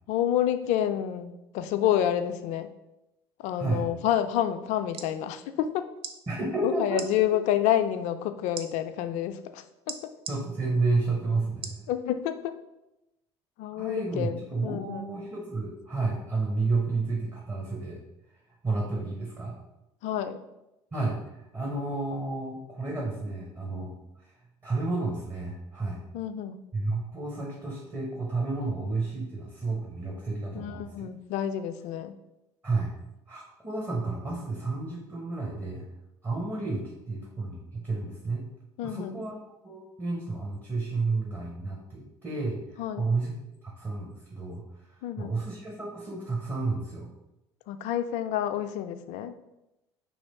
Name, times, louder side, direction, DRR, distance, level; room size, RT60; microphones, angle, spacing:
voice 1, 0.1-2.7 3.4-5.8 6.6-10.1 11.9-12.5 13.6-15.1 20.0-20.4 26.1-26.6 30.5-32.2 38.8-39.2 42.8-43.1 45.0-45.4 47.7-49.4, left 11 dB, 55° left, 10 dB, 0.4 m, -29 dB
sound 1, 4.7-5.1 6.0-6.2 6.9-7.1 8.5-8.7 9.9-10.4 11.6-11.8 12.4-12.5, right 6 dB, 40° right, 0.5 m, -38 dB
voice 2, 6.3-7.0 10.3-11.9 13.8-18.0 18.6-19.5 20.9-26.0 26.7-31.1 32.6-32.9 33.3-35.8 36.2-38.4 38.8-39.3 39.6-43.3 43.6-47.1, right 3 dB, 20° right, -3 dB, 1.0 m, -31 dB
3.1 x 3.0 x 4.1 m, 0.92 s
figure-of-eight pair, 60°, 15 cm